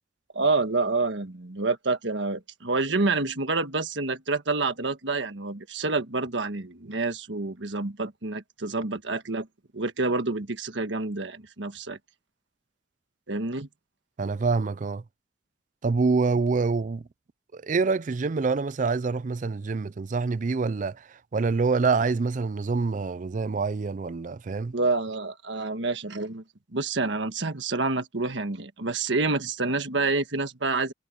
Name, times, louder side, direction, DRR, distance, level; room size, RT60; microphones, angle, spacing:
voice 1, 0.3-9.5 9.7-12.0 13.3-13.7 24.7-26.4 26.7-30.9, right 3 dB, 70° right, 1.5 m, -28 dB
voice 2, 14.2-15.0 15.8-17.1 17.5-24.7, right 4 dB, 40° right, 0.4 m, -26 dB
head